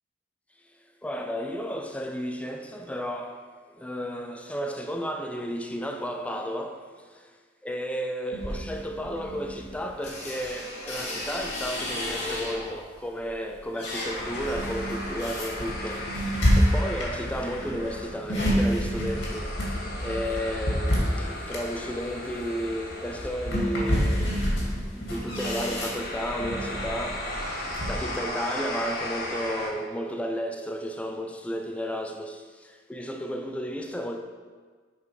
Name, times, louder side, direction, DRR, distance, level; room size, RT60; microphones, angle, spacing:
voice 1, 1.0-7.4 7.6-19.6 20.0-27.3 27.9-34.2, equal, 5° left, 0.5 m, -33 dB
sound 1, 8.3-12.8 13.3-28.0, equal, 70° left, 2.3 m, -29 dB
sound 2, 14.0-29.7, left 1 dB, 55° left, 1.3 m, -37 dB
7.5 x 5.0 x 4.9 m
head